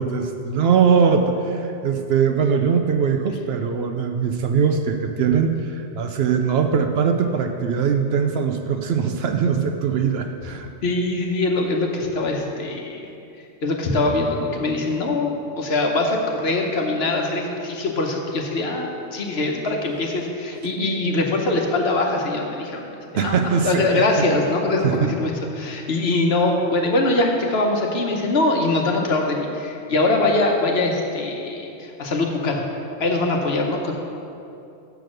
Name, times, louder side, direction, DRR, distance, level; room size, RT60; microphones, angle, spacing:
voice 1, 0.0-10.7 20.6-20.7 23.1-24.0 24.8-25.1, right 6 dB, 65° right, 6 dB, 0.7 m, -21 dB
voice 2, 10.8-13.1 13.6-15.3 15.6-22.9 23.1-32.6 33.0-33.9, left 2 dB, 60° left, 1 dB, 1.1 m, -22 dB
6.9 x 6.2 x 6.2 m, 2.7 s
omnidirectional pair, 1.2 m